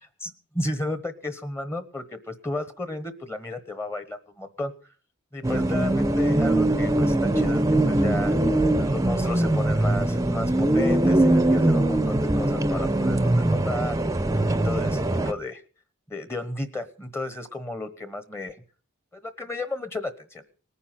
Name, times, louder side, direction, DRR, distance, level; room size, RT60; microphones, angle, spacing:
voice 1, 0.2-4.7 5.3-8.3 8.8-14.0 14.5-15.6 16.1-18.6 19.1-20.5, left 2 dB, 10° left, 11 dB, 1.1 m, -33 dB
sound 1, 5.4-15.3, right 1 dB, 15° right, 0.8 m, -22 dB
19.5 x 9.5 x 5.9 m, 0.40 s
head